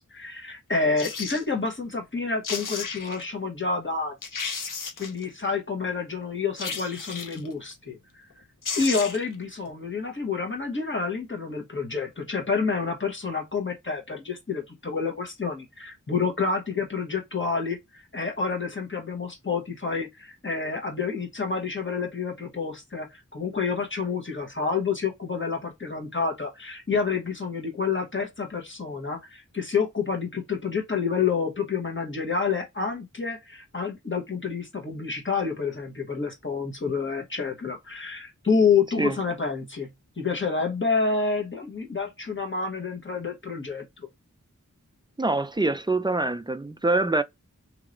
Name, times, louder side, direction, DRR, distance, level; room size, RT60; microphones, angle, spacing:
voice 1, 0.0-4.1 5.0-8.4 8.8-39.9 40.2-44.1, left 5 dB, 35° left, 1.2 m, -28 dB
sound 1, 1.0-1.4 2.2-2.3 2.4-3.2 3.8-3.9 4.2-5.2 6.6-7.5 8.3-8.4 8.6-9.3 9.7-9.8, left 5 dB, 80° left, 0.6 m, -33 dB
voice 2, 45.2-47.2, right 2 dB, 15° right, 0.4 m, -24 dB
2.9 x 2.9 x 2.5 m
wide cardioid pair, 50°, 32 cm